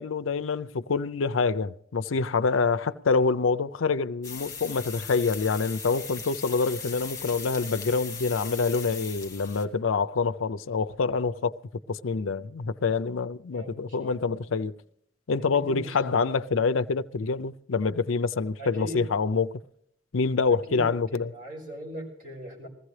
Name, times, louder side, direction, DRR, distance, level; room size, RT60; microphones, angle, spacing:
voice 1, 0.0-11.5 11.9-14.7 15.3-19.6 20.1-21.3, left 4 dB, 90° left, 0.5 m, -26 dB
Frying food, 4.2-9.7, left 6 dB, 15° left, 1.6 m, -39 dB
voice 2, 13.5-14.4 15.4-16.2 18.6-19.1 20.5-22.7, equal, 40° right, 5.3 m, -41 dB
20.5 x 14.5 x 3.3 m
head